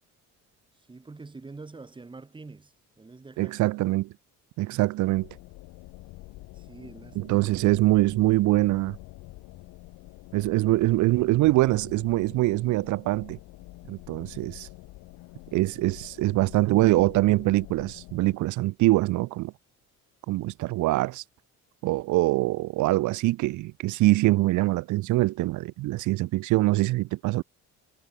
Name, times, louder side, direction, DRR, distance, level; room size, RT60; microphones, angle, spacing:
voice 1, 0.9-3.7 6.5-7.5 22.3-22.4, right 3 dB, 15° right, 4.7 m, -46 dB
voice 2, 3.4-4.1 4.6-5.3 7.2-9.0 10.3-13.4 13.9-14.7 15.5-19.5 20.3-21.2 21.8-27.4, right 19 dB, 70° right, 0.6 m, -24 dB
sound 1, 5.1-18.4, left 19 dB, 80° left, 1.0 m, -47 dB
cardioid pair, 155°, 31 cm